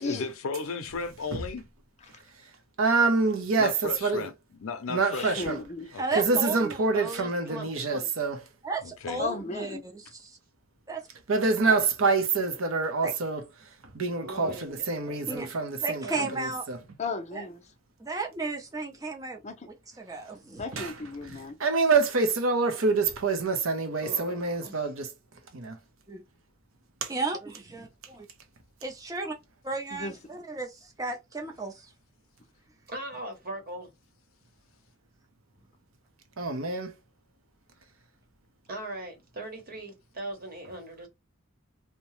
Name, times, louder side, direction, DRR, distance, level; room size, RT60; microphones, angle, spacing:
voice 1, 0.0-1.7 3.6-4.3 4.6-5.6 5.9-6.3 8.8-9.2, left 4 dB, 75° left, 0.5 m, -35 dB
voice 2, 2.8-4.2 4.9-5.6 6.1-8.4 11.3-13.5 13.9-16.8 20.7-20.9 21.6-25.1 25.5-25.8 36.4-36.9, right 4 dB, 75° right, 0.7 m, -26 dB
voice 3, 5.1-5.9 9.2-9.8 17.0-17.6 19.4-19.7 20.6-21.6 29.9-30.2, left 3 dB, 35° left, 0.6 m, -35 dB
voice 4, 6.0-6.8 8.6-9.8 10.9-11.0 13.0-13.1 15.3-15.5 15.8-16.6 18.0-19.4 20.1-20.6 26.1-26.2 27.1-28.2 28.8-29.3 29.6-30.7 31.0-31.7, right 3 dB, 15° right, 0.6 m, -33 dB
voice 5, 6.9-8.1 14.2-15.2 16.0-16.3 24.0-24.8 32.9-33.9 38.7-41.1, right 2 dB, 45° right, 1.0 m, -39 dB
2.8 x 2.1 x 3.0 m
head